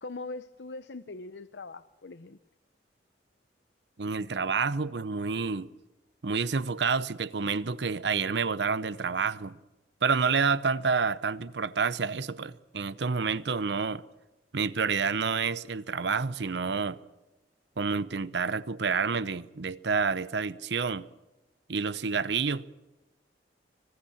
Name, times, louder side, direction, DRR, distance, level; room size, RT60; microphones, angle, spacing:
voice 1, 0.0-2.4, left 3 dB, 75° left, 0.7 m, -41 dB
voice 2, 4.0-5.7 6.2-9.6 10.0-14.0 14.5-17.0 17.8-21.1 21.7-22.7, right 5 dB, 75° right, 0.7 m, -29 dB
25.0 x 20.0 x 7.2 m
head